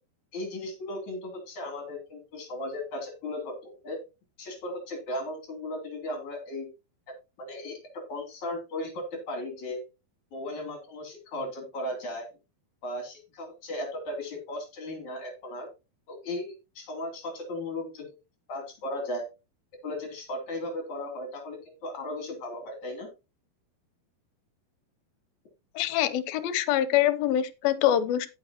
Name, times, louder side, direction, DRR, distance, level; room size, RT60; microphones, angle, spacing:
voice 1, 0.3-4.0 4.4-6.7 7.4-7.8 8.1-9.8 10.3-12.3 12.8-15.7 16.1-18.1 18.5-19.3 19.8-23.1, left 1 dB, 55° left, 4.2 m, -36 dB
voice 2, 25.8-28.3, left 11 dB, 80° left, 2.6 m, -25 dB
14.5 x 6.1 x 2.9 m
omnidirectional pair, 4.3 m